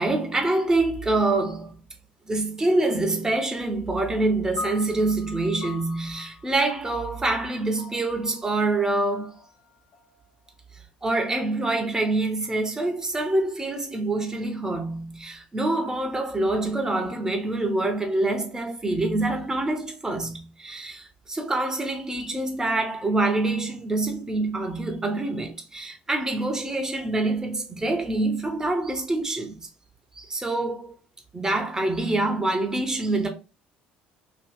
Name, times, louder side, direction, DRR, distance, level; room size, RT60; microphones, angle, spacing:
voice 1, 0.0-1.7 2.3-9.4 10.7-29.7 30.1-30.9 31.3-33.3, right 2 dB, 10° right, 0.5 m, -26 dB
sound 1, 4.6-11.0, left 2 dB, 50° left, 0.4 m, -42 dB
2.7 x 2.6 x 2.3 m
figure-of-eight pair, 60°, 5 cm